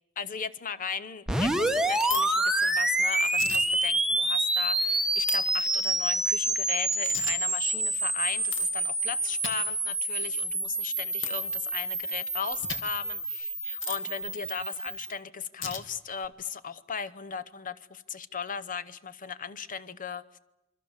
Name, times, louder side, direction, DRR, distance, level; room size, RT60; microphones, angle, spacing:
voice 1, 0.2-20.2, left 6 dB, 40° left, 16 dB, 0.8 m, -37 dB
sound 1, 1.3-15.1, right 2 dB, 5° right, 1.0 m, -28 dB
sound 2, 2.0-2.2 3.3-3.6 5.3-5.4 7.0-7.3 8.5-8.7 9.4-9.5 11.2-11.3 12.6-12.8 13.8-14.0 15.6-15.8, left 7 dB, 60° left, 2.2 m, -34 dB
27.5 x 23.5 x 7.2 m, 0.94 s
head